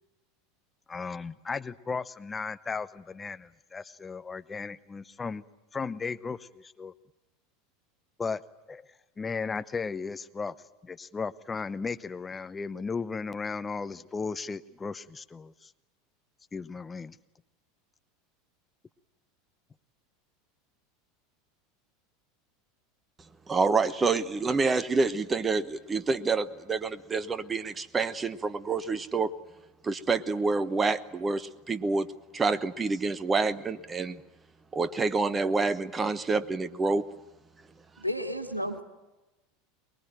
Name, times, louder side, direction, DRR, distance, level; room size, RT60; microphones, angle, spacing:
voice 1, 0.9-5.4 5.7-6.9 8.2-8.4 8.7-8.9 9.2-10.5 10.8-15.7 16.5-17.2, left 4 dB, 15° left, 14 dB, 0.8 m, -35 dB
voice 2, 23.5-29.3 29.8-32.1 32.3-34.2 34.7-37.0, right 4 dB, 20° right, 15 dB, 1.1 m, -27 dB
voice 3, 38.0-38.8, equal, 90° right, 6 dB, 1.9 m, -32 dB
24.0 x 22.0 x 9.1 m, 1.0 s
figure-of-eight pair, 80°, 0 cm